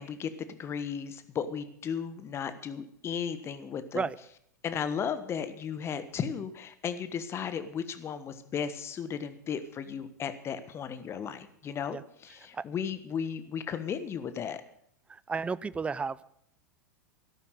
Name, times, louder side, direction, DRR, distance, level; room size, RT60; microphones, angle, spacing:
voice 1, 0.0-4.1 4.6-14.6, left 7 dB, 25° left, 12 dB, 1.3 m, -35 dB
voice 2, 15.1-16.3, right 5 dB, 10° right, 19 dB, 0.5 m, -33 dB
13.5 x 12.0 x 6.5 m, 0.69 s
figure-of-eight pair, 90°, 10 cm